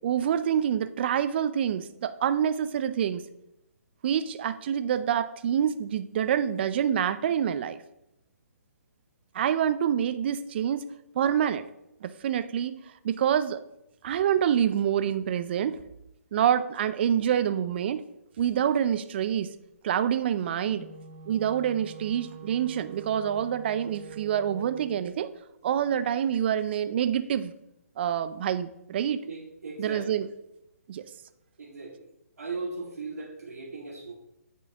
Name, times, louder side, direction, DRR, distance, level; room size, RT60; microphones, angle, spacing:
voice 1, 0.0-3.2 4.0-7.8 9.3-10.8 11.2-11.6 12.0-12.8 13.0-13.6 14.0-15.8 16.3-18.0 18.4-19.5 19.8-20.9 21.3-25.3 25.6-27.5 28.0-29.2 29.8-30.3 30.9-31.0, right 9 dB, 40° right, 12 dB, 0.4 m, -26 dB
Wind instrument woodwind instrument, 20.6-25.1, right 8 dB, 25° right, 2.0 m, -45 dB
voice 2, 29.2-30.2 31.6-32.0 32.4-34.1, right 3 dB, 75° right, -3 dB, 1.6 m, -38 dB
8.4 x 4.5 x 3.4 m, 0.85 s
hypercardioid pair, 150°, 9 cm